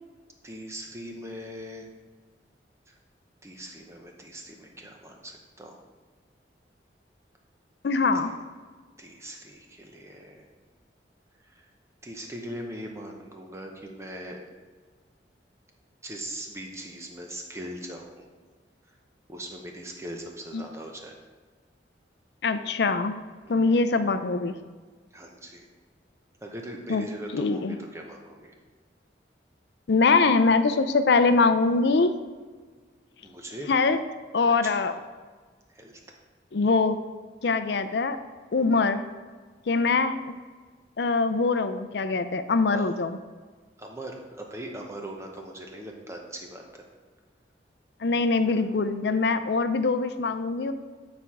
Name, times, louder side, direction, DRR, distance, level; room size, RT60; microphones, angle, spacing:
voice 1, 0.4-1.9 2.9-3.0 3.4-5.8 8.2-8.3 9.0-10.4 11.4-11.7 12.0-14.4 16.0-18.3 18.9-19.0 19.3-21.2 23.5-23.6 25.1-25.7 26.4-28.5 33.2-33.7 34.6-34.8 35.7-36.0 42.7-43.0 43.8-46.9, right 1 dB, 15° right, 1 dB, 0.8 m, -40 dB
voice 2, 7.8-8.3 20.5-20.6 22.4-23.1 23.5-24.6 26.9-27.0 27.3-27.8 29.9-32.1 33.7-34.0 34.3-34.9 36.5-37.0 37.4-38.2 38.5-39.0 39.7-40.4 41.0-43.2 48.0-50.7, left 4 dB, 70° left, 10 dB, 0.5 m, -23 dB
9.2 x 4.3 x 4.7 m, 1.4 s
head